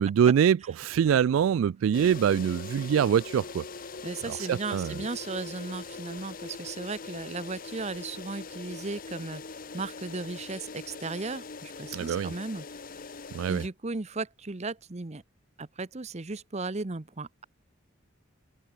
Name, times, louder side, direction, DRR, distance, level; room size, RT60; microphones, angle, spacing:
voice 1, 0.0-3.6 4.5-4.9 11.9-12.3 13.3-13.6, right 8 dB, 80° right, 0.3 m, -24 dB
sound 1, 1.9-13.7, left 4 dB, 45° left, 1.0 m, -42 dB
voice 2, 4.0-12.8 13.5-15.2 15.6-17.5, right 3 dB, 35° right, 0.8 m, -36 dB
head